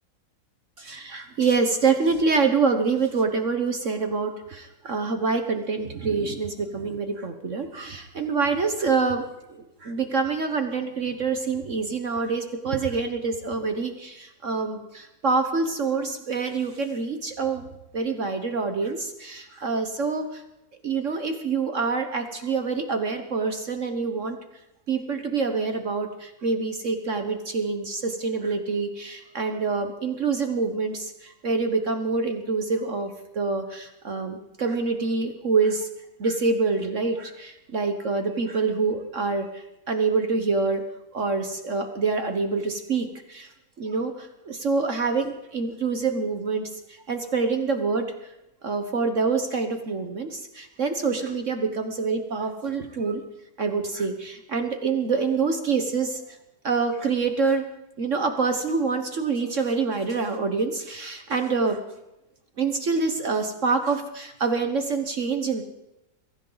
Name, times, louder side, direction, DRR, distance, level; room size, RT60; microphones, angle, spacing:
voice 1, 0.8-9.2 9.5-17.7 17.9-20.4 20.8-24.4 24.9-35.9 36.2-40.8 41.1-43.5 43.8-46.7 47.1-48.1 48.6-53.2 53.6-56.2 56.6-57.6 58.0-61.8 62.6-65.6, right 4 dB, 45° right, 7 dB, 1.3 m, -26 dB
22.5 x 15.5 x 4.0 m, 0.89 s
omnidirectional pair, 2.1 m